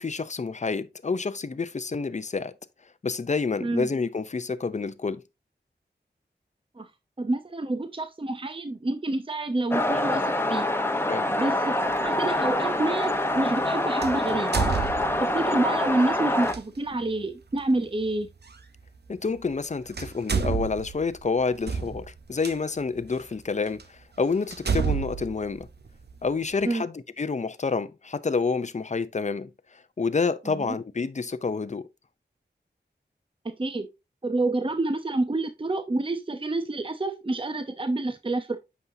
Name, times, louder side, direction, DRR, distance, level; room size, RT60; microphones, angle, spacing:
voice 1, 0.0-2.5 3.0-5.2 11.1-11.3 19.1-25.7 26.2-31.8, left 4 dB, 40° left, 0.6 m, -28 dB
voice 2, 7.2-10.7 11.4-14.6 15.2-18.3 26.6-26.8 30.5-30.7 33.4-33.9 34.2-38.6, right 2 dB, 30° right, 0.7 m, -28 dB
sound 1, 9.7-16.5, left 1 dB, 10° left, 1.0 m, -26 dB
sound 2, 11.9-12.1 14.0-15.5 16.4-16.6 18.5-18.6 19.5-19.7 19.9-22.5 23.2-23.3 23.8-23.9 24.5-26.3, right 6 dB, 65° right, 0.8 m, -29 dB
8.0 x 5.5 x 2.7 m
wide cardioid pair, 45°, 19 cm